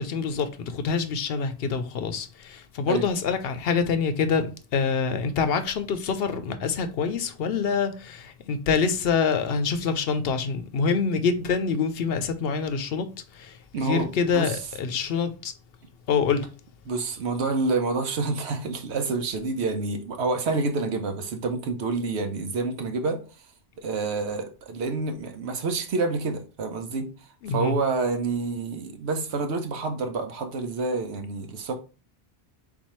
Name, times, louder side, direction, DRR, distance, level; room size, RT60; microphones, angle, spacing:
voice 1, 0.0-15.5 16.1-16.5 27.4-27.8, left 5 dB, 70° left, 0.8 m, -26 dB
voice 2, 13.7-14.6 16.9-23.2 23.8-27.1 27.5-31.8, right 3 dB, 80° right, 1.1 m, -28 dB
4.3 x 3.9 x 3.0 m
omnidirectional pair, 1.1 m